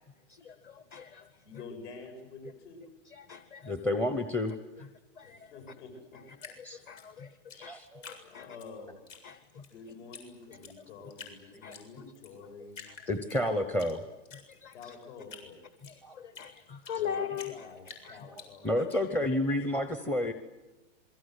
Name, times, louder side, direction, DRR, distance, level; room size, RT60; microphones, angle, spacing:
voice 1, 0.3-1.4 3.0-3.7 4.8-4.9 5.2-5.6 6.1-7.7 8.0-8.6 9.2-9.6 10.5-10.6 11.4-12.0 12.9-13.0 14.3-15.0 15.8-17.7 18.0-18.3 18.6-18.7, left 8 dB, 25° left, 11 dB, 1.1 m, -42 dB
voice 2, 1.4-2.8 5.2-6.2 8.2-8.9 9.7-12.8 14.7-15.6 16.9-18.7, left 4 dB, 65° left, 4 dB, 7.9 m, -48 dB
voice 3, 3.7-4.6 6.6-6.8 7.5-8.1 13.1-14.0 16.0-16.1 18.1-18.2 18.6-20.3, left 1 dB, 5° left, 9 dB, 0.8 m, -30 dB
Drip, 6.4-8.7 9.1-9.7 10.1-10.2 10.5-11.4 11.7-12.3 12.7-13.9 14.3-17.0 17.4-19.0, left 6 dB, 90° left, 7.3 m, -48 dB
27.5 x 22.5 x 8.2 m, 1.1 s
hypercardioid pair, 155°, 37 cm